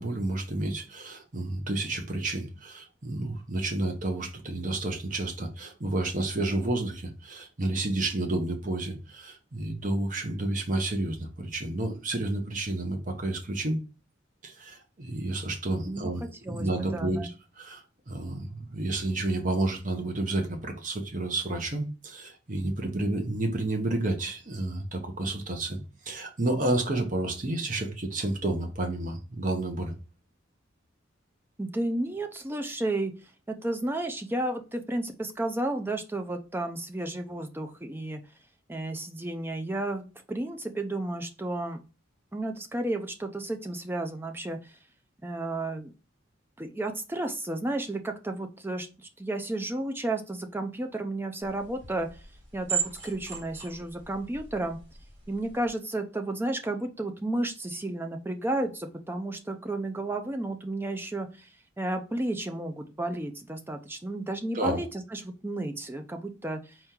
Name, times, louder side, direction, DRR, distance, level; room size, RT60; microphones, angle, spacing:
voice 1, 0.0-13.8 14.4-25.8 26.0-29.9 64.5-64.8, right 2 dB, 40° right, 0.8 m, -30 dB
voice 2, 16.4-17.3 31.6-38.2 38.7-41.8 42.3-44.8 45.2-45.9 46.6-52.2 52.5-54.8 55.3-61.5 61.8-66.8, right 2 dB, 10° right, 0.4 m, -32 dB
sound 1, 51.4-55.7, right 7 dB, 65° right, 1.5 m, -37 dB
4.3 x 2.9 x 3.6 m
head